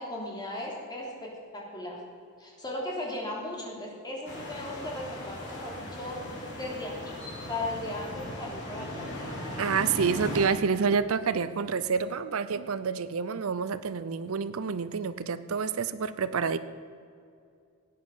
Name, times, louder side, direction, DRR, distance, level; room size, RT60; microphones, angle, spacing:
voice 1, 0.0-2.0 2.4-6.2 6.5-9.2, left 1 dB, 20° left, -2 dB, 3.3 m, -37 dB
sound 1, 4.2-10.5, left 1 dB, 55° left, 3.6 m, -38 dB
voice 2, 9.6-16.6, right 5 dB, 70° right, 14 dB, 0.6 m, -28 dB
17.0 x 9.5 x 7.2 m, 2.4 s
head